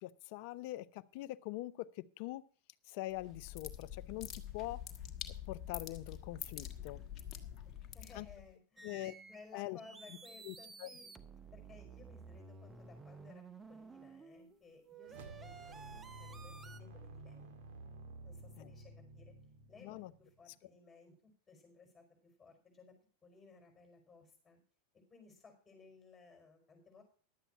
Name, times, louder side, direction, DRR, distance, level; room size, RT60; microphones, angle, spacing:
voice 1, 0.0-2.4 2.9-4.8 5.5-7.0 8.1-8.3 8.8-9.2 9.5-9.8 10.4-10.9 18.6-18.7 19.8-20.1, left 17 dB, 55° left, 17 dB, 0.6 m, -43 dB
sound 1, 3.1-8.5, left 10 dB, 35° left, 1.5 m, -46 dB
voice 2, 7.9-11.1 11.5-17.5 18.2-19.3 19.7-22.9 23.2-24.6 24.9-27.0, left 4 dB, 15° left, 4 dB, 5.0 m, -60 dB
sound 2, 8.8-9.5 9.8-14.6 14.8-16.8, right 5 dB, 15° right, 0.8 m, -53 dB
sound 3, 15.0-20.4, right 2 dB, 60° right, 1.9 m, -52 dB
11.5 x 8.1 x 5.7 m, 0.42 s
hypercardioid pair, 105°, 0 cm